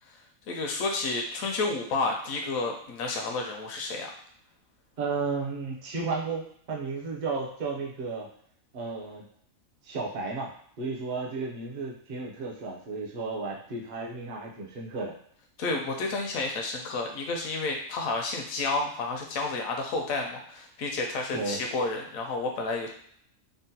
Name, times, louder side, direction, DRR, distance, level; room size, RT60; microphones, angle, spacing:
voice 1, 0.5-4.1 15.6-22.9, left 3 dB, 85° left, 1 dB, 1.0 m, -30 dB
voice 2, 5.0-8.3 8.7-9.3 9.8-15.1 21.3-21.6, right 4 dB, 45° right, -2 dB, 0.6 m, -33 dB
3.7 x 2.1 x 2.7 m, 0.65 s
omnidirectional pair, 1.4 m